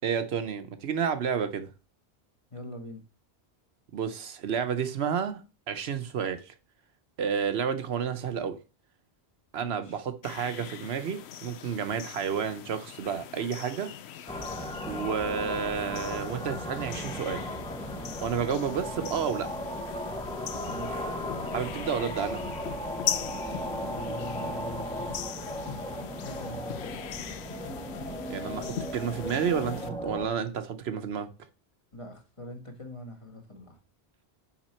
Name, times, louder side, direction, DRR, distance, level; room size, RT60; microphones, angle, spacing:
voice 1, 0.0-1.7 3.9-6.5 7.2-8.6 9.5-13.9 14.6-17.4 18.2-19.5 21.5-22.4 28.3-31.3, right 7 dB, 70° right, 1.0 m, -31 dB
voice 2, 2.5-3.0 9.6-10.0 20.7-21.1 23.7-25.0 26.2-26.8 31.9-33.8, equal, 30° left, 1.6 m, -42 dB
sound 1, 10.2-29.9, left 9 dB, 80° left, 0.9 m, -41 dB
sound 2, 14.3-30.3, equal, 5° left, 0.7 m, -36 dB
5.9 x 4.6 x 4.3 m
omnidirectional pair, 1.1 m